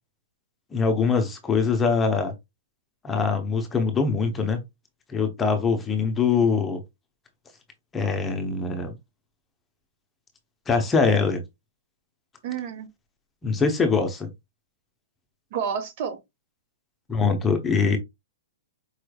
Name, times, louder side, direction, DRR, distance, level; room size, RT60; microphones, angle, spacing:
voice 1, 0.7-2.3 3.0-4.6 5.1-6.8 7.9-8.9 10.7-11.4 13.4-14.3 17.1-18.0, left 5 dB, 15° left, 0.8 m, -23 dB
voice 2, 12.4-12.9 15.5-16.2, right 7 dB, 50° right, 1.0 m, -29 dB
4.7 x 3.1 x 2.3 m
hypercardioid pair, 135°, 0 cm